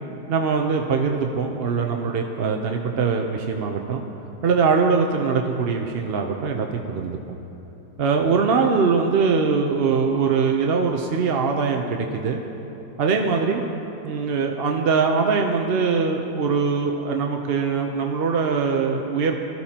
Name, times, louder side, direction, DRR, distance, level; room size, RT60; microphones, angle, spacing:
voice 1, 0.3-4.0 4.4-7.4 8.0-12.4 13.0-13.6 14.0-19.4, right 5 dB, 55° right, 2 dB, 0.7 m, -22 dB
21.5 x 14.0 x 2.9 m, 3.0 s
omnidirectional pair, 1.7 m